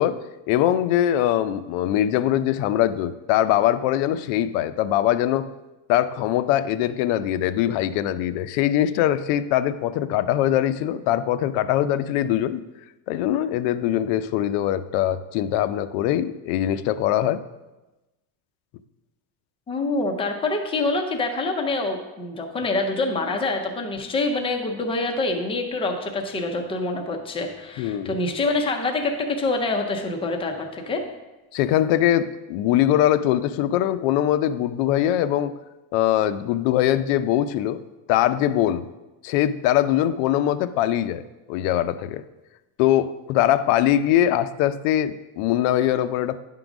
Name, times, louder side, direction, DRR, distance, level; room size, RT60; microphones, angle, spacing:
voice 1, 0.0-5.5 5.9-12.6 13.1-17.4 27.8-28.2 31.5-35.5 35.9-37.8 38.1-38.9 39.2-41.2 41.5-42.2 42.8-46.4, left 12 dB, 80° left, 13 dB, 0.6 m, -22 dB
voice 2, 19.7-31.0, left 2 dB, 10° left, 3 dB, 0.4 m, -26 dB
9.8 x 3.8 x 5.9 m, 1.1 s
cardioid pair, 175°, 48 cm